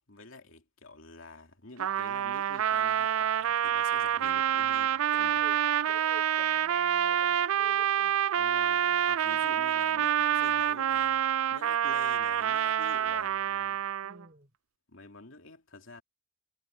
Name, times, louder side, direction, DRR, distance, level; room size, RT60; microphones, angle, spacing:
voice 1, 0.0-5.5 8.3-11.2 11.5-13.8 14.9-16.0, left 3 dB, 70° left, 2.7 m, -49 dB
Trumpet, 1.8-14.2, right 10 dB, 75° right, 0.4 m, -27 dB
voice 2, 4.2-4.8 5.1-8.1 8.8-10.3 14.0-14.5, right 3 dB, 40° right, 6.6 m, -51 dB
head